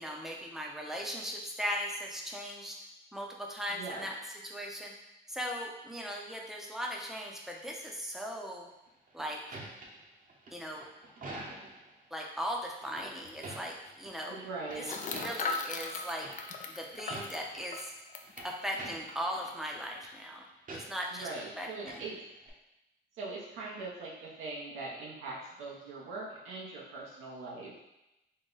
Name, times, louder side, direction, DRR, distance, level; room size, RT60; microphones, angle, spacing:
voice 1, 0.0-2.8 3.1-4.1 4.4-4.9 5.3-8.7 9.1-9.4 10.5-10.9 12.1-14.4 14.8-14.9 15.2-16.3 16.7-17.9 18.4-20.4 20.7-21.3 21.6-22.0, equal, ahead, -1 dB, 0.7 m, -38 dB
voice 2, 3.7-4.1 14.3-14.9 21.1-22.2 23.1-27.8, right 3 dB, 85° right, -5 dB, 0.8 m, -41 dB
sound 1, 8.9-11.9 12.8-14.1 14.4-15.6 16.2-16.6 16.9-17.6 18.1-19.5 19.7-20.1 20.7-21.4 21.7-22.5, right 2 dB, 45° right, 0.8 m, -46 dB
sound 2, 13.0-13.1 13.3-13.4 14.8-18.5 19.1-19.2 19.5-19.8, left 4 dB, 40° left, 0.4 m, -38 dB
3.8 x 2.2 x 3.9 m, 0.92 s
cardioid pair, 90°, 20 cm